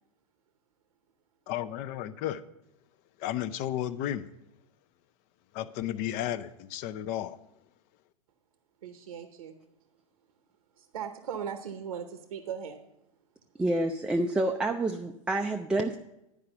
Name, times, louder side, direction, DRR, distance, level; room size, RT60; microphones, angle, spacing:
voice 1, 1.5-2.4 3.2-4.3 5.5-7.4, left 11 dB, 45° left, 14 dB, 0.5 m, -33 dB
voice 2, 8.8-9.5 10.8-12.8, right 8 dB, 85° right, 8 dB, 0.8 m, -38 dB
voice 3, 13.6-16.0, right 2 dB, 5° right, 4 dB, 0.3 m, -28 dB
10.5 x 4.9 x 6.7 m, 0.89 s
hypercardioid pair, 115°, 19 cm